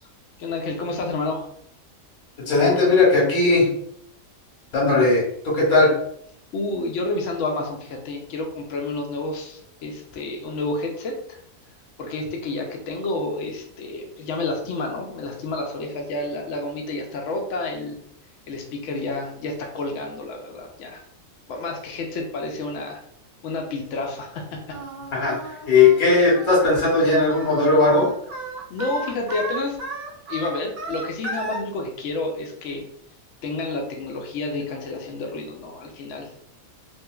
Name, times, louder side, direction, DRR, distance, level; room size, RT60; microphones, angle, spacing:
voice 1, 0.4-1.5 6.5-11.4 12.0-18.0 18.5-21.0 21.5-23.0 23.4-24.8 28.7-29.8 30.3-32.8 33.4-36.3, left 2 dB, 65° left, 2 dB, 0.8 m, -30 dB
voice 2, 2.5-3.7 4.7-5.9 25.1-25.4 25.7-28.1, left 3 dB, 90° left, -5 dB, 1.7 m, -17 dB
Singing, 24.7-31.6, right 2 dB, 55° right, 0.5 m, -34 dB
3.0 x 2.5 x 2.2 m, 0.67 s
omnidirectional pair, 1.5 m